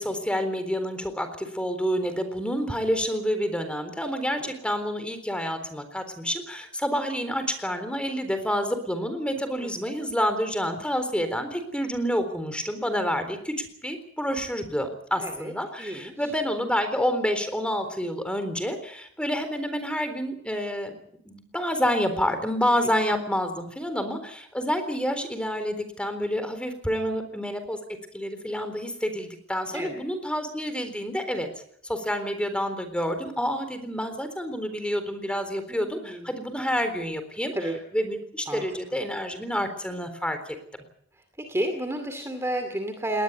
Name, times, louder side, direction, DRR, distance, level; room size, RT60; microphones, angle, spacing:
voice 1, 0.0-20.9 21.3-27.8 28.1-31.5 31.9-37.5 37.9-40.6, equal, 5° left, 9 dB, 3.9 m, -28 dB
voice 2, 15.2-15.5 15.8-16.1 29.7-29.9 35.7-36.3 37.5-37.8 38.5-39.0 41.4-43.2, right 1 dB, 15° right, 6 dB, 2.4 m, -31 dB
21.0 x 19.5 x 8.3 m, 0.67 s
head